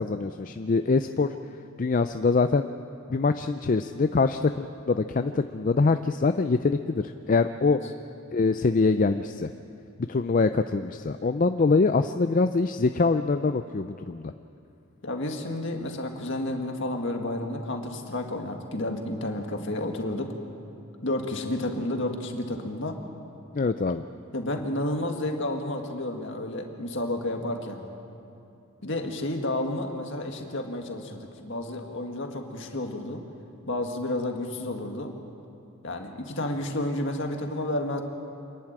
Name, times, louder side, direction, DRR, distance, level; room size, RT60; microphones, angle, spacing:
voice 1, 0.0-1.3 1.8-2.7 3.1-7.8 8.3-9.5 10.1-14.3 23.5-24.0, left 4 dB, 35° left, 9 dB, 0.4 m, -24 dB
voice 2, 15.0-20.3 21.0-23.0 24.3-27.8 28.8-33.2 33.7-35.1 35.8-38.0, left 1 dB, 55° left, 3 dB, 1.9 m, -31 dB
27.5 x 11.0 x 8.8 m, 2.7 s
head